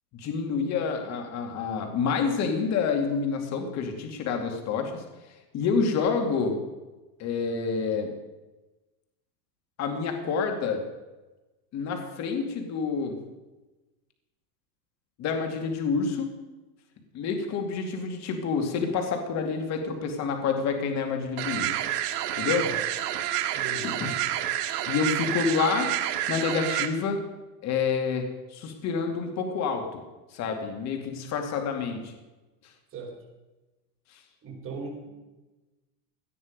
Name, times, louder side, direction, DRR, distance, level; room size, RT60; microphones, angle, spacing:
voice 1, 0.1-5.0 5.5-6.6 7.2-8.1 9.8-10.8 11.7-13.1 15.2-16.3 17.1-21.8 22.4-22.6 24.0-24.1 24.9-25.9 26.3-27.2 27.6-30.0 30.3-32.1 34.1-34.2, left 5 dB, 35° left, 4 dB, 2.5 m, -28 dB
sound 1, 21.4-26.9, right 12 dB, 70° right, 1.8 m, -29 dB
voice 2, 23.5-24.0 32.9-33.1 34.4-35.1, right 3 dB, 25° right, -1 dB, 4.5 m, -38 dB
18.0 x 11.5 x 5.3 m, 1.1 s
supercardioid pair, 150°, 48 cm